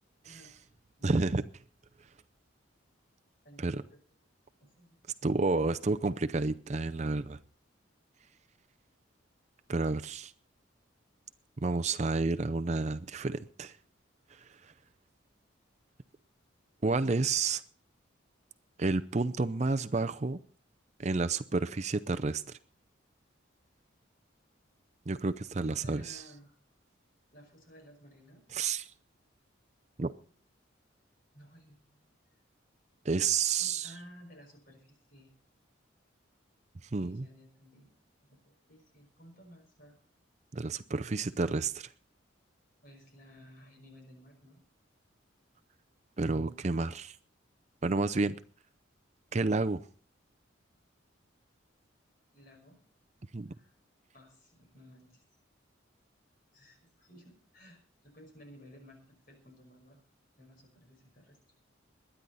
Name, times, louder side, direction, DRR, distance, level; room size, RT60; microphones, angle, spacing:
voice 1, 0.2-0.7 1.0-1.3 3.4-4.0 4.6-5.0 25.6-26.6 27.3-28.4 31.3-32.1 33.6-35.3 37.0-37.9 38.3-40.0 42.8-44.6 52.3-52.8 53.5-53.7 54.1-55.2 56.5-60.0 60.4-61.4, equal, 45° left, 5.4 m, -55 dB
voice 2, 1.0-1.4 3.6-3.8 5.2-7.4 9.7-10.3 11.6-13.8 14.3-14.7 16.8-17.6 18.8-20.4 21.0-22.6 25.1-26.2 28.5-28.8 30.0-30.1 33.0-33.9 36.8-37.3 40.5-41.9 46.2-47.2 47.8-48.4 49.3-49.8 53.3-53.5, right 3 dB, 35° right, 0.5 m, -30 dB
21.5 x 10.0 x 4.1 m
head